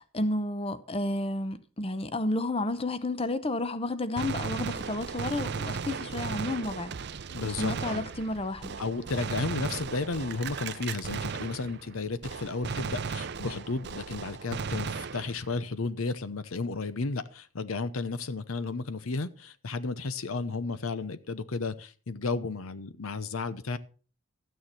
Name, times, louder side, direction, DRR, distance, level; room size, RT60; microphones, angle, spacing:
voice 1, 0.0-7.0 7.4-8.8, left 2 dB, 25° left, 0.7 m, -31 dB
Gunshot gunfire, 4.2-12.0 12.2-15.6, right 5 dB, 55° right, 0.6 m, -36 dB
voice 2, 7.3-8.0 8.8-23.8, left 3 dB, 75° left, 0.8 m, -33 dB
13.0 x 9.4 x 4.3 m
head